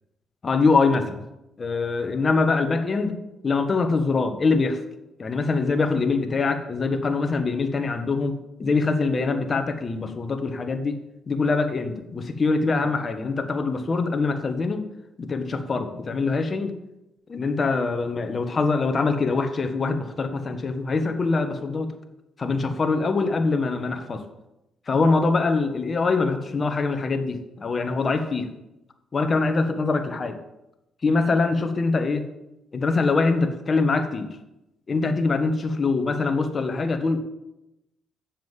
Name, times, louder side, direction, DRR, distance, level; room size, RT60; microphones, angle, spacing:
voice 1, 0.4-1.2 1.6-3.2 3.4-4.8 5.2-11.0 11.3-14.8 15.2-16.7 17.3-21.9 22.4-24.2 24.9-28.5 29.1-30.4 31.0-32.3 32.7-34.3 34.9-37.2, left 3 dB, 35° left, 7 dB, 1.4 m, -23 dB
7.6 x 7.3 x 7.4 m, 0.90 s
cardioid pair, 90°, 0 cm